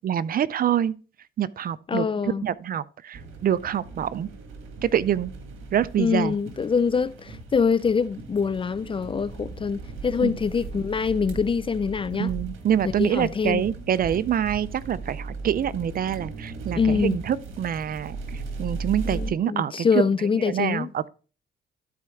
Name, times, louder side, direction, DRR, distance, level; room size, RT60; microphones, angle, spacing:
voice 1, 0.0-0.9 1.4-4.3 4.8-5.3 5.7-6.4 10.2-10.4 12.1-20.0 20.4-21.1, right 9 dB, 45° right, 0.4 m, -26 dB
voice 2, 1.9-2.4 6.0-12.3 13.0-13.6 16.8-17.2 19.1-20.9, left 5 dB, 25° left, 0.4 m, -24 dB
sound 1, 3.1-19.3, right 3 dB, 85° right, 1.5 m, -38 dB
12.5 x 4.3 x 3.5 m
cardioid pair, 90°, 20 cm